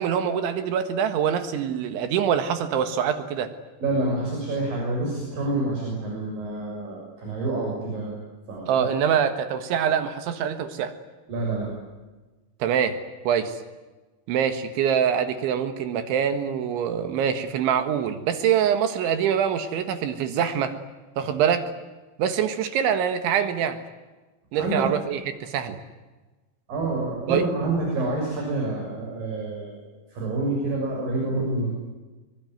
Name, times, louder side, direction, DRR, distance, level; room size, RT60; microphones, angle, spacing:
voice 1, 0.0-3.5 8.7-10.9 12.6-13.0 13.3-13.6 14.3-20.7 21.2-21.6 22.2-23.8 24.5-25.8 27.3-27.4, right 8 dB, 75° right, 9 dB, 3.9 m, -24 dB
voice 2, 3.8-8.2 8.5-8.8 11.3-11.7 24.5-24.9 26.7-29.8 30.1-31.7, right 2 dB, 45° right, -1 dB, 8.3 m, -27 dB
25.5 x 23.0 x 9.3 m, 1.2 s
omnidirectional pair, 5.5 m